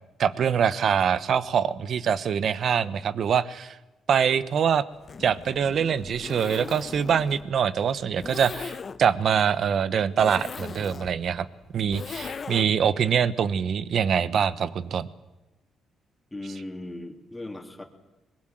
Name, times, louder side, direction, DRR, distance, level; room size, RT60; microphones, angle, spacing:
voice 1, 0.2-3.7 4.1-4.8 5.2-11.4 11.7-15.1, right 7 dB, 60° right, 16 dB, 1.2 m, -24 dB
Zipper (clothing), 4.9-12.9, left 5 dB, 40° left, 0.9 m, -39 dB
voice 2, 16.3-17.8, left 2 dB, 10° left, 3 dB, 3.5 m, -37 dB
23.5 x 22.0 x 7.7 m, 1.1 s
cardioid pair, 90°, 0 cm